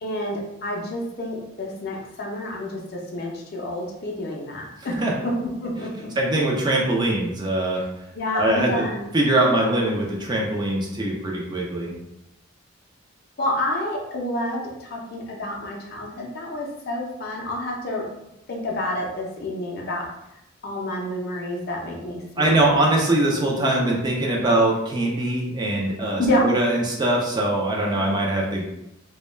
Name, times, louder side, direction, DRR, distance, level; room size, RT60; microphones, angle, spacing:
voice 1, 0.0-4.9 5.2-6.1 8.1-9.1 13.4-18.0 18.5-20.1 20.6-22.8 26.2-26.5, left 1 dB, 50° left, -1 dB, 0.4 m, -28 dB
voice 2, 6.2-7.8 8.3-8.9 9.1-11.9 22.4-28.6, right 1 dB, 20° right, -2 dB, 0.3 m, -22 dB
2.2 x 2.1 x 3.1 m, 0.87 s
head